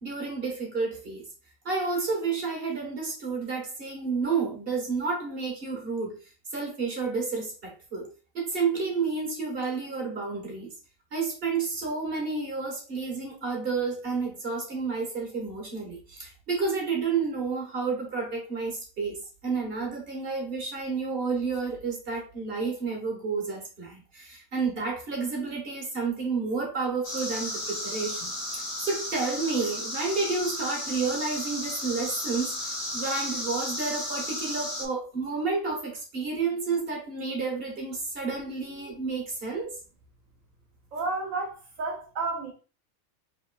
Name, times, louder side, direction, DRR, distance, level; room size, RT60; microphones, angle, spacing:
voice 1, 0.0-1.3 1.6-6.2 6.5-8.1 8.3-10.7 11.1-39.8, right 4 dB, 50° right, 1.3 m, -30 dB
sound 1, 27.0-34.9, left 1 dB, 45° left, 1.5 m, -34 dB
voice 2, 40.9-42.5, right 3 dB, 80° right, 1.2 m, -31 dB
4.9 x 3.0 x 2.3 m
omnidirectional pair, 1.4 m